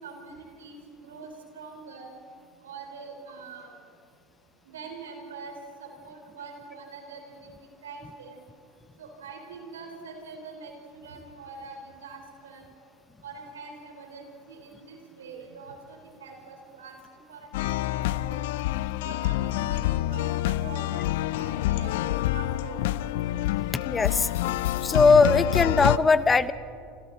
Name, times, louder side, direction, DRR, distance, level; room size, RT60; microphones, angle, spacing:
voice 1, 0.0-2.1 2.6-3.8 4.6-5.5 5.8-8.4 9.0-12.7 13.2-18.4 19.0-21.1 21.4-22.0 22.3-22.9, right 4 dB, 85° right, 3 dB, 4.5 m, -44 dB
sound 1, 17.5-26.0, left 15 dB, 70° left, 0.5 m, -27 dB
voice 2, 23.7-24.6 24.8-26.5, left 4 dB, 20° left, 15 dB, 0.8 m, -20 dB
28.5 x 26.5 x 4.1 m, 2.4 s
hypercardioid pair, 85°, 0 cm